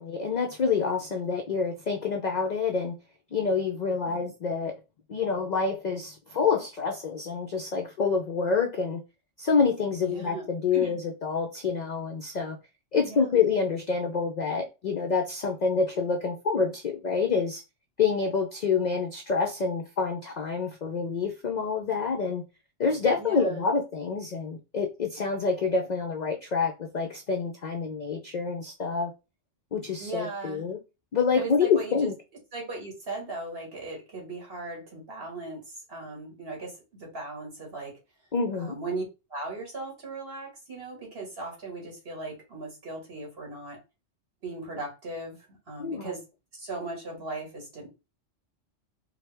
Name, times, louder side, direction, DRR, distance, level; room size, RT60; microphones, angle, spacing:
voice 1, 0.0-3.0 3.3-4.8 5.1-9.0 9.4-12.6 12.9-17.6 18.0-22.4 22.8-29.1 29.7-30.8 31.1-32.1 38.3-38.7 45.8-46.0, left 5 dB, 65° left, 0.4 m, -27 dB
voice 2, 10.0-10.4 10.7-11.0 13.0-13.5 23.2-23.7 30.0-30.7 31.4-32.1 32.5-37.9 38.5-39.0 39.3-43.8 44.4-45.4 45.7-46.2 46.5-47.9, right 2 dB, 50° right, 1.8 m, -38 dB
4.6 x 2.1 x 3.3 m
omnidirectional pair, 1.3 m